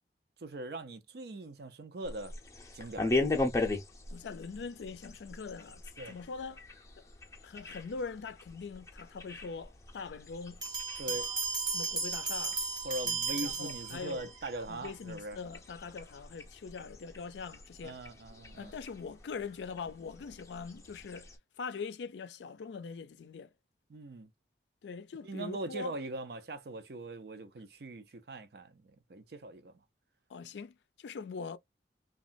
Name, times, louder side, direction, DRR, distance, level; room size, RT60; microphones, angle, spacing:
voice 1, 0.4-2.3 2.7-3.3 6.0-6.1 11.0-11.3 12.8-15.4 17.8-18.7 23.9-24.3 25.2-29.7, right 2 dB, 65° right, 0.5 m, -41 dB
sound 1, 2.0-21.4, left 2 dB, 20° left, 0.5 m, -40 dB
voice 2, 4.1-6.6 7.4-10.6 11.1-11.4 11.7-12.6 13.0-14.3 14.7-18.0 18.6-21.3 21.6-23.5 24.8-26.0 30.3-31.6, left 5 dB, 85° left, 0.4 m, -42 dB
sound 2, 10.6-14.4, right 4 dB, 25° right, 0.6 m, -35 dB
3.0 x 2.3 x 2.5 m
head